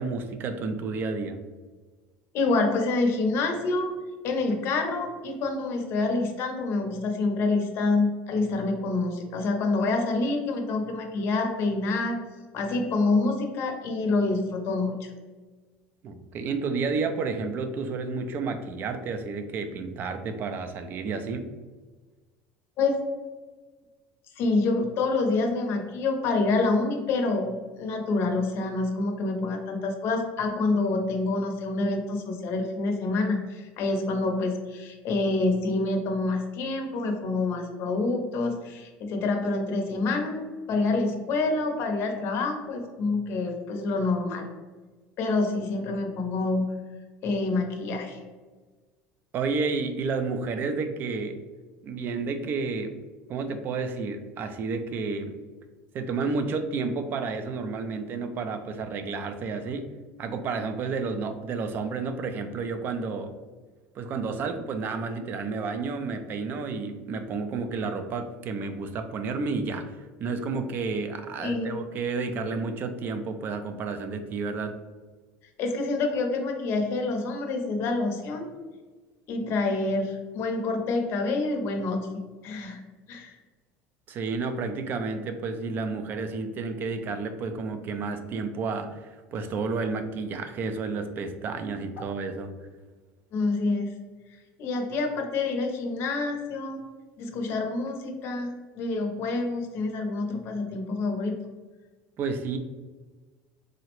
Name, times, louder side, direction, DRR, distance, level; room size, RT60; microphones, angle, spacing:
voice 1, 0.0-1.4 16.0-21.5 49.3-51.4 51.8-52.9 53.3-55.3 55.9-59.9 60.2-63.3 63.9-74.7 84.1-92.5 102.2-102.6, right 4 dB, 35° right, 8 dB, 0.3 m, -31 dB
voice 2, 2.3-3.9 4.2-12.2 12.5-15.1 22.8-23.0 24.4-40.4 40.7-44.5 45.2-46.8 47.2-48.2 71.4-71.8 75.6-78.5 79.3-82.8 83.1-83.4 93.3-93.9 94.6-96.8 97.2-101.4, left 3 dB, 50° left, 4 dB, 0.6 m, -27 dB
3.7 x 2.0 x 2.9 m, 1.4 s
cardioid pair, 140°, 6 cm